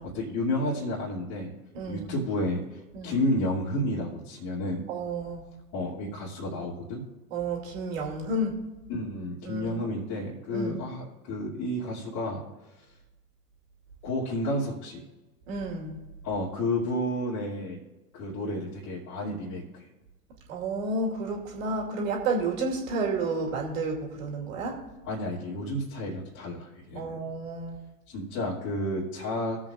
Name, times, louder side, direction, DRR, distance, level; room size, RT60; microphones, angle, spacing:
voice 1, 0.0-1.5 1.9-4.8 5.7-7.0 8.9-12.4 14.0-15.0 16.2-17.8 18.1-19.9 25.0-27.1 28.1-29.6, left 1 dB, 35° left, -7 dB, 2.6 m, -31 dB
voice 2, 1.7-2.1 2.9-3.1 4.9-5.4 7.3-8.6 9.4-10.0 10.5-10.8 15.5-16.0 20.5-24.8 26.9-27.8, right 2 dB, 55° right, 0 dB, 2.7 m, -31 dB
19.5 x 7.6 x 2.5 m, 1.1 s
figure-of-eight pair, 100°, 48 cm